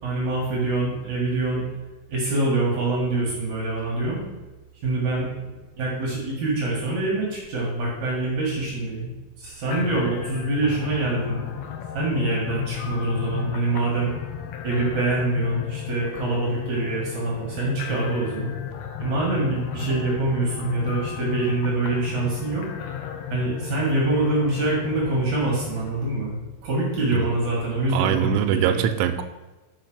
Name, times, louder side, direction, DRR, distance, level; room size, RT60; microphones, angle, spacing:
voice 1, 0.0-1.7 2.1-4.2 4.8-5.5 5.8-9.1 9.4-11.4 11.9-14.1 14.6-18.5 19.0-22.7 23.3-26.4 26.6-28.8, right 2 dB, 50° right, -4 dB, 2.4 m, -25 dB
sound 1, 9.7-25.9, left 10 dB, 80° left, 2.5 m, -34 dB
voice 2, 27.9-29.2, right 11 dB, 85° right, 9 dB, 3.1 m, -23 dB
6.5 x 6.4 x 6.2 m, 1.2 s
omnidirectional pair, 5.8 m